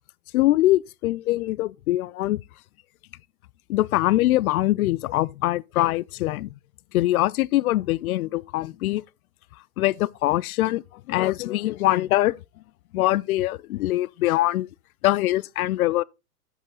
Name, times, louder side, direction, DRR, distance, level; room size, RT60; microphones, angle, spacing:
voice 1, 0.3-2.4 3.7-6.5 6.9-9.0 9.8-12.4 12.9-14.7 15.0-16.0, left 16 dB, 65° left, 0.5 m, -23 dB
8.1 x 7.4 x 3.8 m
hypercardioid pair, 125°, 46 cm